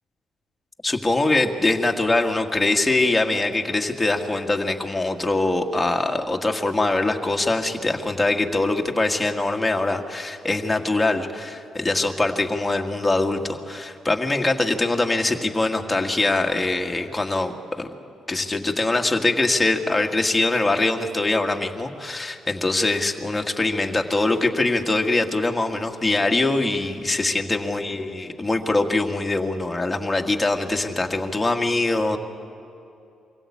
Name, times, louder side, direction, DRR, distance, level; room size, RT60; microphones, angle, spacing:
voice 1, 0.8-17.9 18.3-32.2, left 2 dB, 15° left, 2 dB, 1.8 m, -23 dB
24.0 x 16.5 x 8.6 m, 2.7 s
cardioid pair, 90°, 0 cm